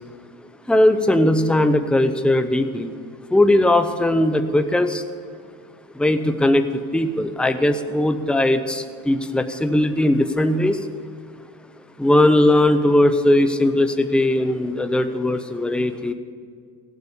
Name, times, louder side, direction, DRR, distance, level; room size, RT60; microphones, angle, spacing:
voice 1, 0.7-2.9 3.3-5.0 6.0-6.6 6.9-10.8 12.0-16.1, left 1 dB, ahead, 9 dB, 0.7 m, -19 dB
16.5 x 8.4 x 7.0 m, 2.2 s
cardioid pair, 115°, 41 cm